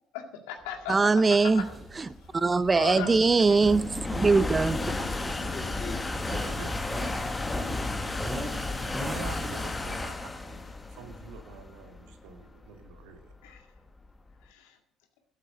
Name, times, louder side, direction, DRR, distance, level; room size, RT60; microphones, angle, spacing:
voice 1, 0.1-1.0 1.4-1.6 2.8-3.2 3.5-3.6 8.0-8.1 13.4-13.6 14.5-14.8, left 8 dB, 80° left, 1.9 m, -37 dB
voice 2, 0.9-1.7 2.0-2.1 2.3-4.8, right 4 dB, 25° right, 0.5 m, -22 dB
sound 1, 1.0-14.3, left 2 dB, 20° left, 1.5 m, -34 dB
sound 2, 1.5-9.7, equal, 5° right, 3.6 m, -40 dB
voice 3, 4.5-8.4, left 5 dB, 40° left, 2.1 m, -46 dB
voice 4, 6.3-6.8 9.0-13.6, right 7 dB, 75° right, 1.8 m, -47 dB
13.0 x 8.2 x 6.6 m
hypercardioid pair, 65°, 0 cm